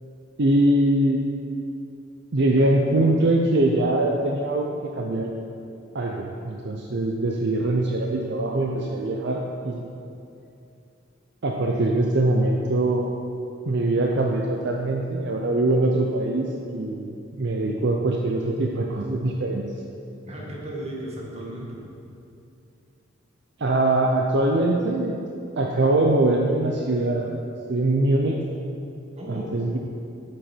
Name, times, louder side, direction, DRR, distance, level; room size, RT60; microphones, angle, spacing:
voice 1, 0.4-1.2 2.3-5.3 5.9-9.8 11.4-13.1 13.7-19.7 23.6-25.2 25.6-27.3 27.7-28.4 29.3-29.8, right 2 dB, 60° right, 0 dB, 0.6 m, -22 dB
voice 2, 20.3-21.8 29.2-29.6, right 1 dB, 35° right, -3 dB, 1.8 m, -35 dB
8.9 x 7.8 x 4.5 m, 2.7 s
head